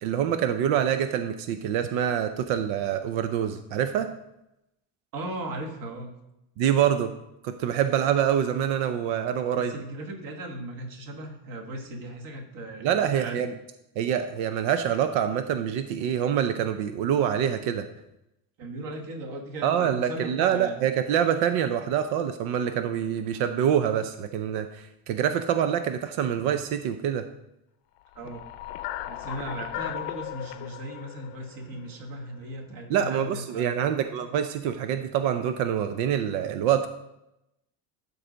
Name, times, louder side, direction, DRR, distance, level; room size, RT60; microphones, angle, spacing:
voice 1, 0.0-4.1 6.6-7.1 7.4-9.7 12.8-13.5 14.0-17.9 19.6-27.3 32.9-36.9, right 9 dB, 90° right, 8 dB, 0.7 m, -26 dB
voice 2, 5.1-6.1 9.5-13.5 18.6-20.8 28.1-28.4 29.0-33.9, right 1 dB, 50° right, 3 dB, 1.5 m, -37 dB
sound 1, 28.1-32.4, left 13 dB, 65° left, 0.6 m, -37 dB
12.5 x 4.1 x 5.0 m, 0.88 s
cardioid pair, 170°, 44 cm